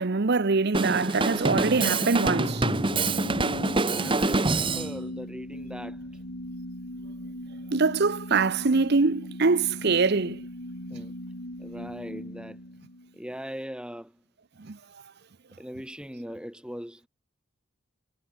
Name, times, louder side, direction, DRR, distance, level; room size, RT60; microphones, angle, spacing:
voice 1, 0.0-2.7 7.7-10.4 10.9-11.0 14.6-14.8, right 4 dB, 50° right, 0.7 m, -24 dB
Drum kit, 0.7-4.9, right 2 dB, 25° right, 1.3 m, -25 dB
sound 1, 1.2-13.4, left 1 dB, 70° left, 5.9 m, -39 dB
voice 2, 3.9-6.1 10.9-11.1 11.6-12.6 13.1-14.2 15.6-17.1, equal, 5° right, 5.7 m, -40 dB
head